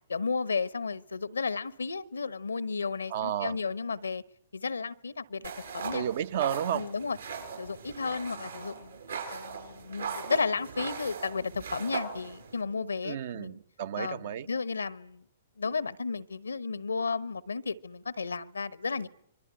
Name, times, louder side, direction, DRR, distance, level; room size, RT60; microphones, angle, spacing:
voice 1, 0.1-4.2 4.5-6.0 6.7-7.2 7.6-9.0 9.3-13.6 14.0-15.2 15.6-19.1, left 4 dB, 80° left, 1.1 m, -33 dB
voice 2, 3.1-3.6 5.9-6.9 13.0-14.5, right 10 dB, 55° right, 1.1 m, -32 dB
sound 1, 5.4-12.6, right 5 dB, 80° right, 7.6 m, -39 dB
26.5 x 23.0 x 9.0 m
figure-of-eight pair, 115°, 0 cm